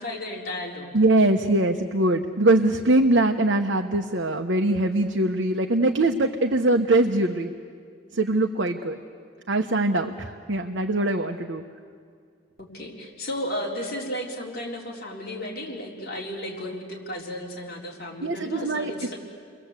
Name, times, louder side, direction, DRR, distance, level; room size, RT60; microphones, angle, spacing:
voice 1, 0.0-0.9 12.6-19.2, left 1 dB, 50° left, -2 dB, 4.0 m, -34 dB
voice 2, 0.9-7.5 8.1-9.0 9.5-11.6 18.2-19.1, right 2 dB, 65° right, 3 dB, 1.0 m, -22 dB
30.0 x 22.0 x 8.3 m, 2.2 s
head